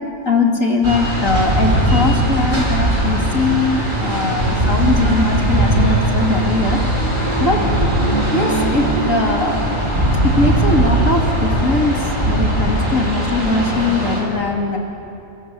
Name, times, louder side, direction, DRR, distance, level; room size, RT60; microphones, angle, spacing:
voice 1, 0.3-6.8 7.4-7.6 8.3-9.6 10.2-12.0 12.2-14.8, left 2 dB, 55° left, 1 dB, 3.3 m, -20 dB
sound 1, 0.8-14.2, right 1 dB, 30° right, 5.7 m, -19 dB
28.5 x 26.5 x 7.9 m, 2.7 s
omnidirectional pair, 1.7 m